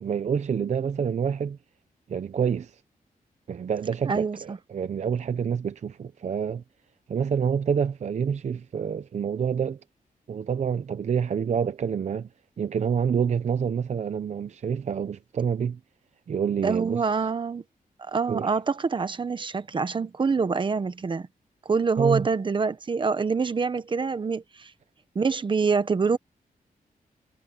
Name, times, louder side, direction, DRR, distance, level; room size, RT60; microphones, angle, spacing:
voice 1, 0.0-1.6 2.1-2.8 3.5-6.6 7.1-9.8 10.3-12.3 12.6-15.8 16.3-17.0 18.3-18.5 22.0-22.3, right 7 dB, 50° right, 0.6 m, -27 dB
voice 2, 4.0-4.6 16.6-17.6 18.1-21.3 21.6-24.7 25.1-26.2, right 5 dB, 30° right, 1.0 m, -26 dB
wide cardioid pair, 175°, 15 cm